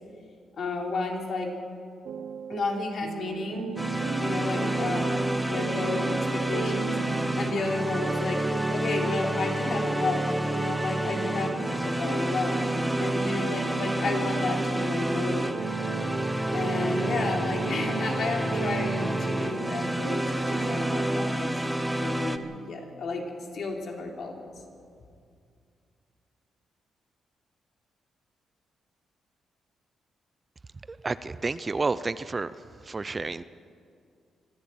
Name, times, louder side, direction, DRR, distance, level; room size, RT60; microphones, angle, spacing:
voice 1, 0.6-1.5 2.5-3.7 4.2-5.2 5.5-10.2 10.5-15.5 16.5-21.6 22.0-23.2 23.5-24.4, left 3 dB, 60° left, 1 dB, 3.4 m, -32 dB
sound 1, 2.0-21.0, right 10 dB, 75° right, 0.5 m, -37 dB
sound 2, 3.8-22.4, right 1 dB, 5° right, 1.0 m, -29 dB
voice 2, 30.9-32.5 32.8-33.4, right 3 dB, 25° right, 15 dB, 0.5 m, -30 dB
25.0 x 11.0 x 9.4 m, 2.3 s
cardioid pair, 110°, 0 cm